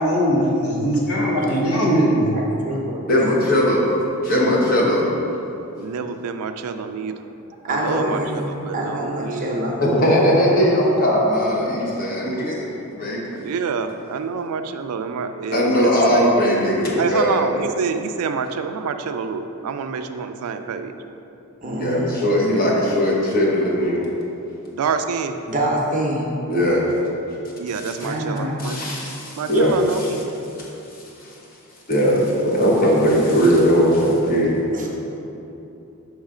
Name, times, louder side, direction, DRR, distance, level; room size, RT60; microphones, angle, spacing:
voice 1, 0.0-2.3, equal, 75° left, -3 dB, 1.1 m, -20 dB
voice 2, 2.3-3.0 7.6-8.4 8.7-9.8 21.6-22.3 25.5-26.3 28.0-28.6 34.7-34.9, right 1 dB, 35° right, -2 dB, 0.7 m, -26 dB
voice 3, 3.1-3.9 4.2-5.1 7.9-8.1 9.8-13.4 15.5-17.5 21.8-24.1 26.5-26.8 28.6-29.7 30.6-30.7 31.2-31.3 31.9-34.6, equal, 40° left, -3 dB, 1.0 m, -19 dB
voice 4, 5.8-7.3 7.7-9.6 13.3-16.3 17.0-20.9 24.7-25.4 27.6-28.8 29.4-30.3, right 5 dB, 80° right, 8 dB, 0.4 m, -27 dB
6.5 x 3.2 x 4.8 m, 2.9 s
head